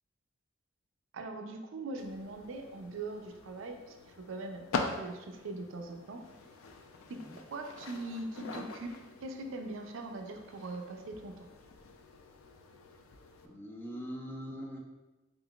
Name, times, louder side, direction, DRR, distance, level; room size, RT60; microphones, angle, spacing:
voice 1, 1.1-4.0 4.3-4.7 4.9-6.2 7.1-7.2 7.5-8.9 9.2-11.5, right 2 dB, 70° right, 4 dB, 0.4 m, -41 dB
sound 1, 2.0-13.5, left 4 dB, 85° left, 0.4 m, -44 dB
voice 2, 13.4-14.8, equal, 10° left, 0 dB, 0.3 m, -42 dB
3.8 x 3.7 x 2.3 m, 1.1 s
head